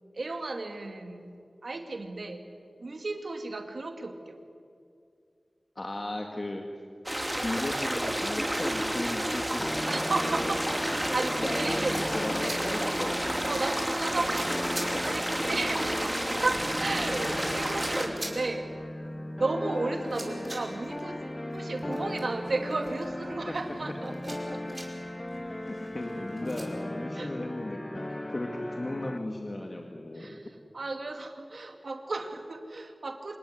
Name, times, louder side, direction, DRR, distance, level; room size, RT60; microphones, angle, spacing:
voice 1, 0.1-1.4 1.6-2.5 2.8-4.4 9.9-11.9 12.4-12.7 13.4-18.7 19.0-19.1 19.4-24.8 27.2-27.3 30.1-33.4, right 2 dB, 75° right, 5 dB, 2.5 m, -34 dB
voice 2, 5.8-6.7 7.4-9.7 11.4-13.2 24.7-24.8 25.7-27.8 28.1-30.4, left 1 dB, 45° left, 2 dB, 2.1 m, -36 dB
sound 1, 7.1-18.1, equal, 10° right, 3.2 m, -30 dB
sound 2, 9.6-29.2, left 1 dB, 25° left, 0.9 m, -37 dB
sound 3, 11.5-26.6, right 1 dB, 35° right, 4.9 m, -47 dB
27.0 x 18.0 x 9.9 m, 2.4 s
wide cardioid pair, 70°, 0 cm